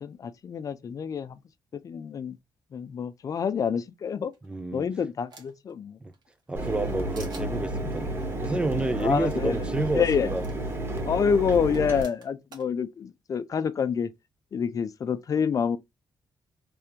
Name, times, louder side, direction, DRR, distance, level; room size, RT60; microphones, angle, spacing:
voice 1, 0.0-1.4 1.7-2.4 2.7-4.3 4.7-6.0 9.0-9.6 9.9-10.3 11.0-14.1 14.5-15.8, left 6 dB, 45° left, 0.5 m, -27 dB
sound 1, 4.3-5.7 6.1-6.9 7.1-7.5 9.0-9.1 9.3-9.4 10.4-10.5 11.5-12.7, right 4 dB, 65° right, 1.4 m, -49 dB
voice 2, 4.4-4.9 6.0-6.1 6.5-8.1 8.4-10.4, right 2 dB, 15° right, 0.4 m, -30 dB
Mechanisms, 6.6-12.0, right 1 dB, 30° right, 1.2 m, -31 dB
3.5 x 3.4 x 2.9 m
cardioid pair, 125°, 8 cm